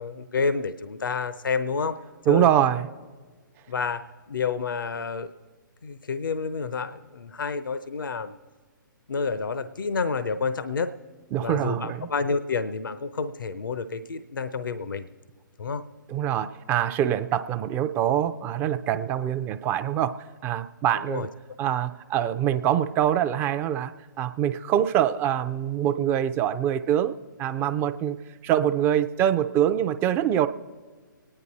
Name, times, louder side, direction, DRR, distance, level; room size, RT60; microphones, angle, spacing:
voice 1, 0.0-2.0 2.3-2.5 3.7-4.0 4.3-5.3 5.8-8.3 9.1-10.9 11.4-15.1 15.6-15.8 21.1-21.3, left 5 dB, 75° left, 13 dB, 0.7 m, -29 dB
voice 2, 2.3-2.9 11.3-12.1 16.1-21.3 21.6-23.9 24.2-28.2 28.4-30.5, right 10 dB, 20° right, 10 dB, 0.5 m, -24 dB
25.5 x 9.9 x 4.2 m, 1.5 s
figure-of-eight pair, 130°, 11 cm